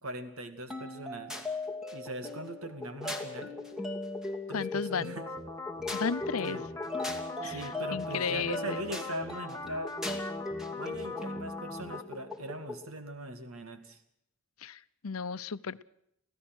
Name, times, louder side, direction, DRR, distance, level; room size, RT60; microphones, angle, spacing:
voice 1, 0.0-1.4 1.9-3.5 4.5-5.3 6.4-6.7 7.4-9.9 10.8-14.0, right 1 dB, 85° right, 8 dB, 2.4 m, -40 dB
sound 1, 0.7-12.8, left 2 dB, 5° right, 2.3 m, -38 dB
voice 2, 4.5-5.2 5.9-6.6 7.4-8.8 14.6-15.8, left 5 dB, 90° left, 15 dB, 0.7 m, -34 dB
sound 2, 5.2-12.0, left 2 dB, 15° left, 1.3 m, -42 dB
26.0 x 16.5 x 6.3 m, 0.74 s
head